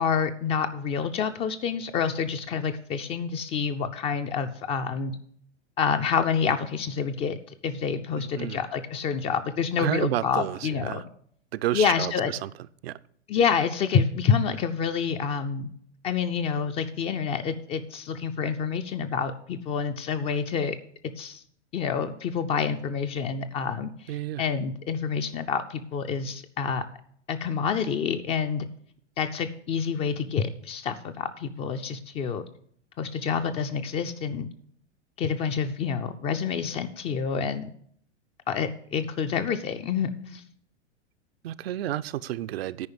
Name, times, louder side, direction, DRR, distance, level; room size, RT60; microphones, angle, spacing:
voice 1, 0.0-5.2 5.8-7.4 7.6-11.0 11.7-12.3 13.3-15.7 16.0-20.8 21.2-21.4 21.7-24.1 24.4-26.8 27.3-28.7 29.2-32.5 33.0-34.5 35.2-37.7 38.5-40.4, left 6 dB, 20° left, 9 dB, 0.3 m, -28 dB
voice 2, 8.2-8.6 9.8-11.0 11.5-12.5 12.8-13.0 24.1-24.4 41.4-42.9, right 13 dB, 60° right, 15 dB, 0.5 m, -31 dB
9.7 x 5.0 x 7.9 m, 0.62 s
hypercardioid pair, 105°, 35 cm